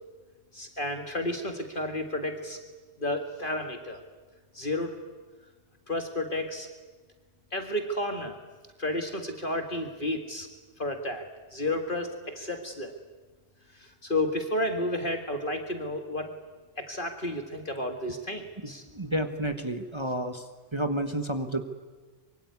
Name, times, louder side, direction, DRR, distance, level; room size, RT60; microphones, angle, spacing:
voice 1, 0.5-2.6 3.0-4.0 4.5-4.9 5.9-6.7 7.5-8.4 8.8-10.5 10.8-11.2 11.5-12.9 13.8-16.3 16.8-18.8, left 1 dB, 50° left, 5 dB, 2.1 m, -31 dB
voice 2, 18.6-20.4 20.7-21.6, right 1 dB, 25° right, 6 dB, 1.5 m, -30 dB
24.5 x 24.0 x 9.6 m, 1.4 s
omnidirectional pair, 1.2 m